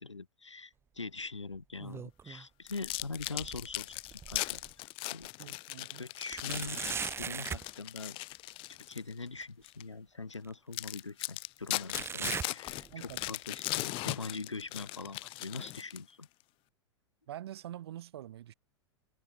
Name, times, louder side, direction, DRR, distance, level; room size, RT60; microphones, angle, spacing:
voice 1, 0.0-4.6 5.1-5.3 6.0-8.2 8.7-12.9 13.2-16.3, left 3 dB, 80° left, 4.9 m, -43 dB
sound 1, 1.5-2.5 2.8-4.7 5.2-5.3 6.3-7.7 9.4-9.5 10.4-10.5 11.9-13.3 13.6-14.0 14.6-14.7 15.6-15.7, right 6 dB, 15° right, 1.2 m, -40 dB
sound 2, 2.7-9.1 9.6-9.8 10.3-10.4 10.7-16.2, left 21 dB, 35° left, 1.1 m, -39 dB
voice 2, 5.4-6.0 12.9-13.2 17.3-18.5, right 12 dB, 60° right, 5.3 m, -45 dB
figure-of-eight pair, 95°, 15 cm